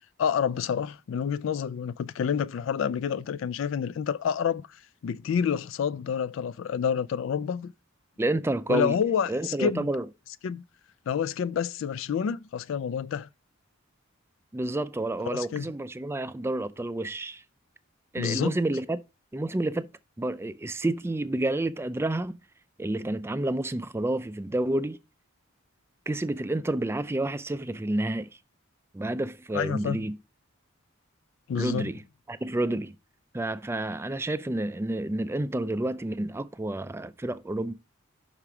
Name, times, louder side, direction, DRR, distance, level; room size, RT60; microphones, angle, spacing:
voice 1, 0.2-7.7 8.7-9.9 10.4-10.6 11.1-13.3 15.3-15.7 18.2-18.5 29.5-30.0 31.5-31.9, left 7 dB, 65° left, 0.3 m, -28 dB
voice 2, 8.2-9.0 9.3-10.1 14.5-17.4 18.1-19.0 19.3-19.9 20.2-22.4 22.8-25.0 26.1-28.3 28.9-30.2 31.6-32.9 33.3-37.7, right 1 dB, 10° right, 0.3 m, -29 dB
5.8 x 4.9 x 5.9 m
head